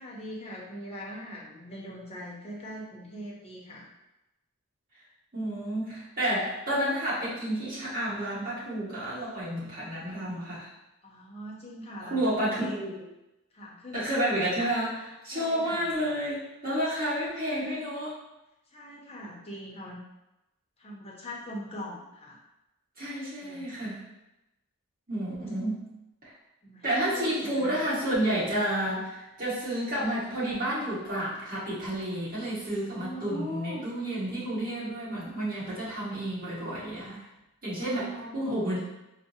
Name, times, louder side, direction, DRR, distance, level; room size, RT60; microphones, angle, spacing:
voice 1, 0.0-3.9 11.0-12.8 13.5-14.7 15.3-15.9 18.7-20.0 20.8-22.4 23.4-23.9 26.6-27.8 28.9-29.1 32.9-33.9 37.8-38.8, equal, 25° left, -3 dB, 0.6 m, -41 dB
voice 2, 5.3-10.7 12.0-12.9 13.9-18.1 23.0-24.0 25.1-25.9 26.2-26.3 26.8-37.2 37.6-38.8, right 1 dB, 40° right, -10 dB, 1.4 m, -30 dB
4.6 x 2.0 x 2.7 m, 0.95 s
head